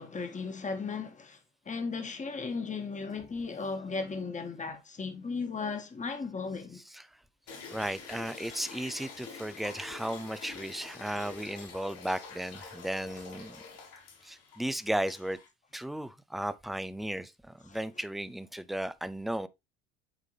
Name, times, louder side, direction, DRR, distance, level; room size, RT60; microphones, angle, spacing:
voice 1, 0.0-1.4 1.7-6.8 13.5-13.6 17.7-17.8, left 4 dB, 20° left, 1.5 m, -36 dB
sound 1, 7.5-15.5, left 5 dB, 65° left, 2.9 m, -47 dB
voice 2, 7.7-13.6 14.2-15.4 15.7-19.5, right 1 dB, ahead, 0.5 m, -35 dB
8.4 x 3.7 x 3.2 m
hypercardioid pair, 70°, 36 cm